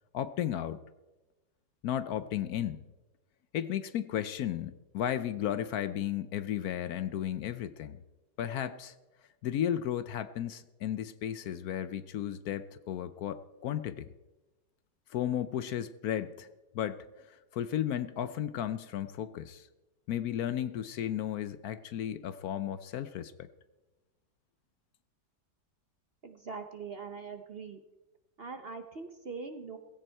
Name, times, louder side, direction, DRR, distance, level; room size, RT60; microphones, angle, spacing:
voice 1, 0.1-0.8 1.8-2.8 3.5-8.0 8.4-8.9 9.4-14.1 15.1-16.5 16.7-19.7 20.1-23.5, left 10 dB, 70° left, 13 dB, 1.0 m, -34 dB
voice 2, 26.2-27.8 28.4-29.8, right 4 dB, 45° right, 7 dB, 0.8 m, -42 dB
17.0 x 16.0 x 4.5 m, 1.1 s
omnidirectional pair, 1.8 m